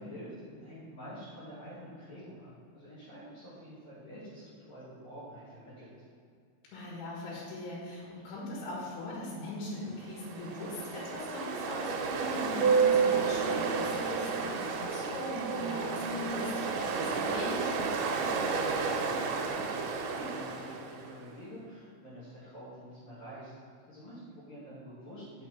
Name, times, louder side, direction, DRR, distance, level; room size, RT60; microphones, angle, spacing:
voice 1, 0.0-2.5 2.7-5.9 18.1-23.5 23.9-25.5, equal, 55° left, -12 dB, 3.7 m, -47 dB
voice 2, 6.7-17.7, left 2 dB, 85° left, -5 dB, 4.3 m, -40 dB
Ocean, 10.0-21.1, right 5 dB, 80° right, 3.0 m, -31 dB
7.6 x 6.4 x 5.5 m, 2.3 s
omnidirectional pair, 5.4 m